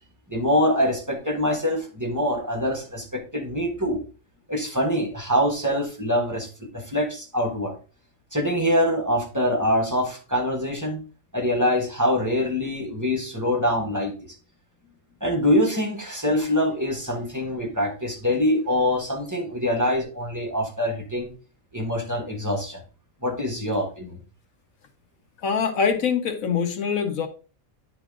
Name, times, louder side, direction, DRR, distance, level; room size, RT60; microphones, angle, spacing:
voice 1, 0.3-4.0 4.5-7.7 8.3-11.0 11.3-14.3 15.2-21.3 21.7-22.8 23.2-24.2, equal, 15° right, 1.4 m, -24 dB
voice 2, 25.4-27.3, left 6 dB, 75° left, 1.3 m, -24 dB
10.0 x 3.8 x 3.6 m
omnidirectional pair, 1.4 m